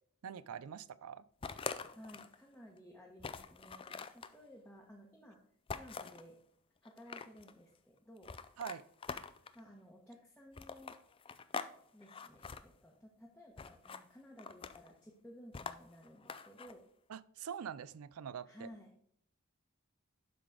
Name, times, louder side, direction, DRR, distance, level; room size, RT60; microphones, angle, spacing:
voice 1, 0.2-1.2 8.6-8.8 17.1-18.7, right 8 dB, 85° right, 18 dB, 0.4 m, -44 dB
sound 1, 1.4-2.4 2.8-2.9 3.2-4.3 5.7-6.2 6.8-7.5 8.2-9.6 10.5-11.7 12.0-12.6 13.6-14.0 14.4-14.9 15.5-16.7, left 5 dB, 25° left, 0.4 m, -44 dB
voice 2, 1.9-5.4 5.7-6.4 6.8-8.3 9.5-10.9 11.9-16.8 18.4-18.9, equal, 5° left, -3 dB, 1.1 m, -56 dB
11.5 x 4.0 x 4.9 m, 0.66 s
head